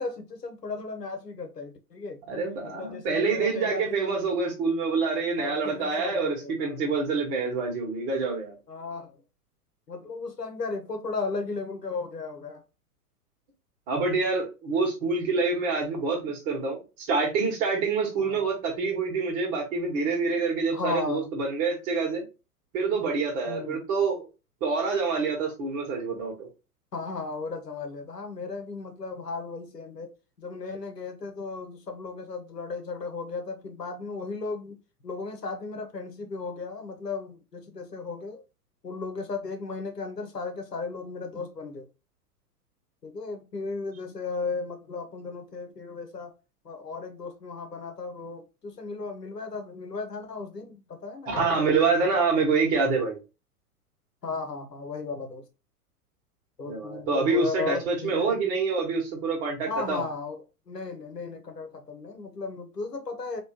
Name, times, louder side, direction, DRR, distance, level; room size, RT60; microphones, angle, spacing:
voice 1, 0.0-2.2 2.6-4.4 5.4-6.8 8.7-9.2 9.9-12.6 18.2-18.5 20.7-21.3 23.5-23.8 26.9-30.1 30.4-38.4 38.8-41.9 43.0-46.3 46.6-51.7 54.2-55.4 56.6-58.5 59.7-63.4, left 4 dB, 90° left, 0.9 m, -35 dB
voice 2, 2.3-8.5 13.9-22.2 22.7-24.3 24.6-26.5 51.3-53.2 56.6-60.0, right 4 dB, 35° right, 1.6 m, -26 dB
3.1 x 3.0 x 2.9 m
figure-of-eight pair, 105°, 47 cm